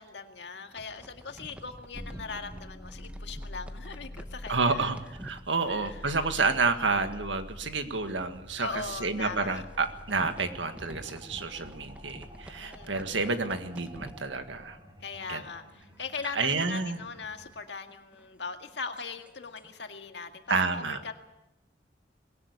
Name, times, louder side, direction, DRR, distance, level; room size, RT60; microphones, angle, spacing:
voice 1, 0.0-4.9 5.7-6.2 8.6-9.6 12.6-13.2 15.0-21.1, left 4 dB, 65° left, 5 dB, 1.9 m, -40 dB
sound 1, 0.5-6.9 7.1-7.4 7.7-7.8 8.4-8.5 9.1-14.9 15.2-19.8, equal, 5° right, 1.0 m, -50 dB
sound 2, 1.9-14.7, left 1 dB, 25° left, 1.7 m, -47 dB
voice 2, 4.5-14.8 15.3-15.4 16.3-17.0 20.5-21.0, right 4 dB, 85° right, 8 dB, 1.8 m, -29 dB
sound 3, 8.8-17.5, equal, 25° right, 3.8 m, -53 dB
21.0 x 17.5 x 8.4 m, 0.92 s
head